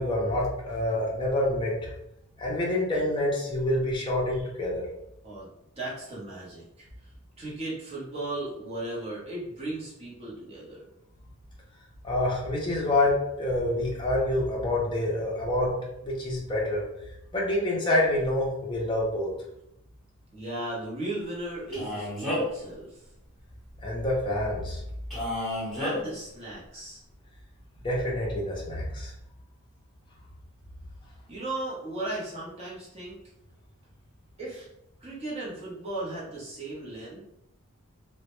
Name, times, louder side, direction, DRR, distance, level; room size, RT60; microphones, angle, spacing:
voice 1, 0.0-1.9 2.4-4.9 12.0-15.8 16.0-16.8 17.3-19.3 23.8-24.8 27.8-29.1, left 1 dB, 20° left, -4 dB, 0.5 m, -27 dB
voice 2, 5.8-7.1 7.4-10.9 20.3-23.0 25.7-27.0 31.3-33.2 34.4-34.7 35.0-37.2, right 2 dB, 25° right, -7 dB, 0.7 m, -36 dB
Male speech man speaking, 21.7-22.6 25.1-25.9, left 1 dB, ahead, 0.9 m, -31 dB
2.1 x 2.1 x 2.9 m, 0.83 s
head